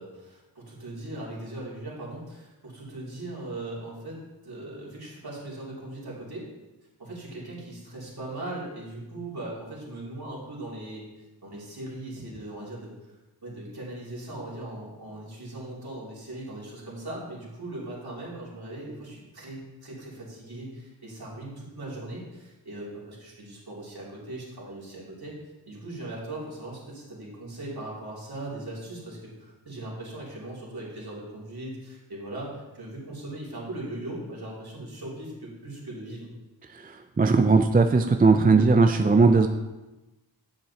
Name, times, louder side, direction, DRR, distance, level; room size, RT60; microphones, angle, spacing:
voice 1, 0.0-6.5 7.0-11.0 11.4-12.9 13.4-25.3 25.7-36.3, right 1 dB, 55° right, -6 dB, 2.9 m, -39 dB
voice 2, 36.7-39.5, right 4 dB, 20° right, 6 dB, 0.4 m, -19 dB
8.8 x 7.4 x 2.8 m, 1.1 s
wide cardioid pair, 70°, 45 cm